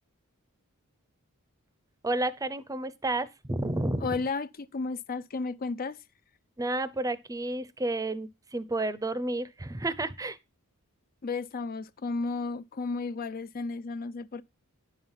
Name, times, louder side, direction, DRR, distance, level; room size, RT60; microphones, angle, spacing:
voice 1, 2.0-4.2 6.6-10.4, right 2 dB, 15° right, 0.7 m, -31 dB
voice 2, 4.0-6.0 11.2-14.4, left 4 dB, 40° left, 0.5 m, -33 dB
10.5 x 5.6 x 5.7 m
head